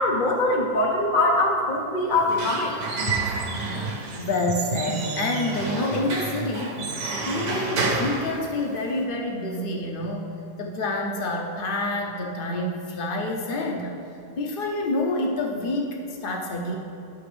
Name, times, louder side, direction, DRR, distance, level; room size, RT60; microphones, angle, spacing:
voice 1, 0.0-2.8, left 2 dB, 40° left, -1 dB, 0.8 m, -22 dB
Squeak / Wood, 2.1-9.0, right 3 dB, 90° right, 1.6 m, -30 dB
voice 2, 4.1-6.9 7.2-10.3 10.6-13.9 14.4-16.8, left 2 dB, 85° left, 0 dB, 0.4 m, -28 dB
10.5 x 5.9 x 3.3 m, 2.5 s
omnidirectional pair, 1.8 m